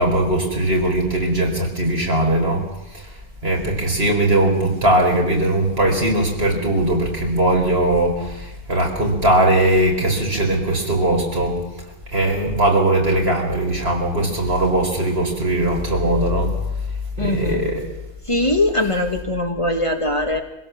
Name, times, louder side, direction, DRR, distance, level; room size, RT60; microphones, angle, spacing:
voice 1, 0.0-2.7 2.9-3.0 3.4-11.6 12.1-16.5 17.2-17.8, right 1 dB, 60° right, 0 dB, 4.6 m, -19 dB
voice 2, 17.2-17.6 18.3-20.4, left 1 dB, 25° left, 4 dB, 1.6 m, -21 dB
24.0 x 16.5 x 7.2 m, 0.94 s
omnidirectional pair, 1.2 m